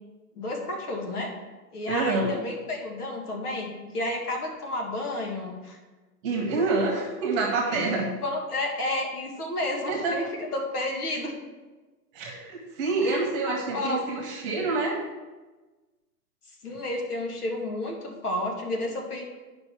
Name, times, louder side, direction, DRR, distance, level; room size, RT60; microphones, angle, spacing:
voice 1, 0.4-1.3 1.7-5.8 7.7-7.9 8.2-11.3 13.0-14.0 16.6-19.3, left 1 dB, 70° left, 1 dB, 2.3 m, -31 dB
voice 2, 1.9-2.3 6.2-8.1 9.9-10.2 12.1-15.0, right 3 dB, 20° right, 0 dB, 1.3 m, -27 dB
10.5 x 5.4 x 4.7 m, 1.2 s
hypercardioid pair, 155°, 48 cm